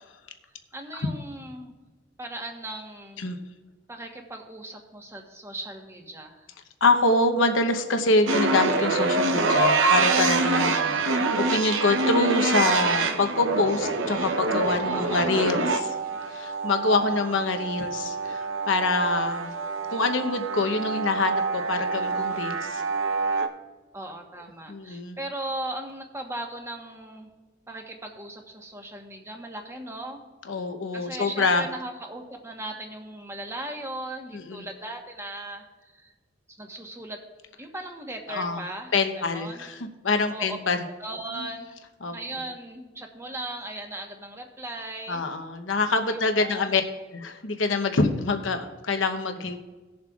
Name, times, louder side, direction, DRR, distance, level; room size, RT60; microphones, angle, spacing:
voice 1, 0.7-1.7 2.2-3.3 3.9-6.5 14.9-15.5 16.8-17.4 23.9-27.3 27.7-30.2 30.5-30.6 30.9-36.1 36.6-37.2 37.6-39.7 40.3-40.6 41.0-41.7 42.1-45.3 46.1-46.7, right 1 dB, 15° right, 2 dB, 1.2 m, -38 dB
voice 2, 6.8-16.0 16.3-19.5 19.9-22.8 24.7-25.2 30.5-31.6 34.3-34.6 38.3-38.6 38.9-40.8 41.4-41.5 42.0-42.1 45.1-46.8 47.1-49.6, left 3 dB, 80° left, 7 dB, 0.9 m, -25 dB
sound 1, 8.3-23.5, right 3 dB, 80° right, 0.8 m, -26 dB
18.5 x 7.4 x 2.4 m, 1.3 s
head